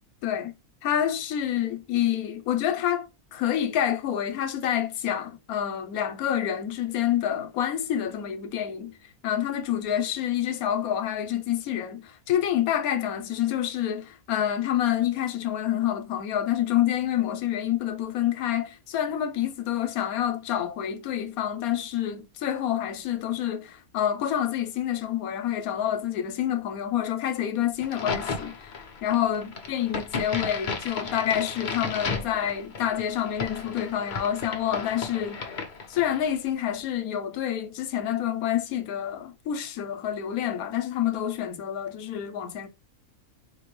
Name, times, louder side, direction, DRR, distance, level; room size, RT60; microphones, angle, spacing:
voice 1, 0.2-0.5 0.8-8.9 9.2-35.4 35.9-42.7, left 10 dB, 85° left, 1.1 m, -28 dB
Crack, 27.8-36.4, left 4 dB, 45° left, 0.7 m, -34 dB
4.4 x 2.6 x 3.2 m
omnidirectional pair, 1.5 m